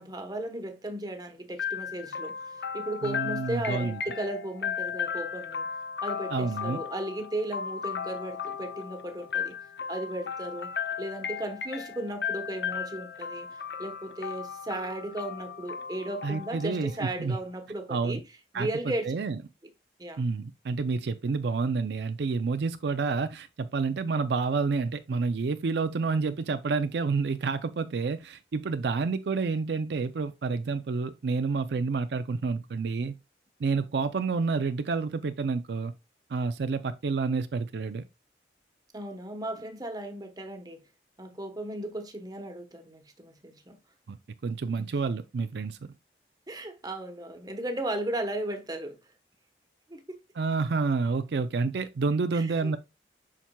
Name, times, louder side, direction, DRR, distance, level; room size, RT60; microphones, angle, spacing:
voice 1, 0.0-5.7 6.0-9.6 9.9-13.5 13.8-18.2 18.5-19.1 20.0-20.2 38.9-40.8 41.2-43.8 44.8-44.9 46.5-49.0 49.9-50.2 52.3-52.8, right 1 dB, 20° right, 1.0 m, -36 dB
sound 1, 1.6-17.4, left 7 dB, 65° left, 0.5 m, -36 dB
voice 2, 3.0-4.0 6.3-6.8 16.2-17.4 17.9-18.2 18.5-18.7 19.0-19.4 20.2-33.2 33.6-35.9 36.3-38.0 44.1-44.2 44.4-45.9 50.4-52.8, right 4 dB, 70° right, 0.4 m, -29 dB
7.1 x 5.9 x 2.2 m
head